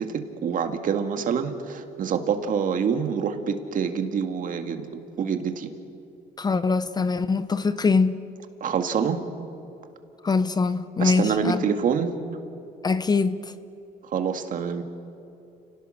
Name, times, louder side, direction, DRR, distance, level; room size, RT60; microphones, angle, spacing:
voice 1, 0.0-4.9 5.2-5.7 8.6-9.2 11.0-12.2 14.1-14.8, right 6 dB, 50° right, 1.9 m, -26 dB
voice 2, 6.4-8.2 10.2-11.6 12.8-13.4, left 4 dB, 25° left, 0.7 m, -23 dB
30.0 x 18.0 x 6.5 m
cardioid pair, 110°, 17 cm